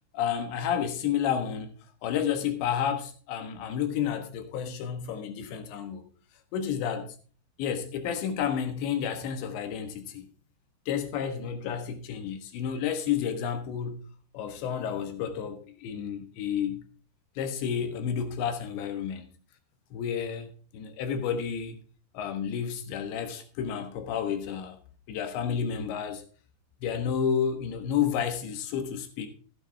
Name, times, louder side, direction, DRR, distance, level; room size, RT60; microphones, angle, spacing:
voice 1, 0.1-6.0 6.5-7.2 7.6-10.3 10.9-14.0 14.3-16.8 17.4-19.2 19.9-21.8 22.2-24.8 25.1-26.2 26.8-29.3, left 8 dB, 90° left, 3.7 m, -31 dB
15.5 x 9.1 x 3.5 m
omnidirectional pair, 5.0 m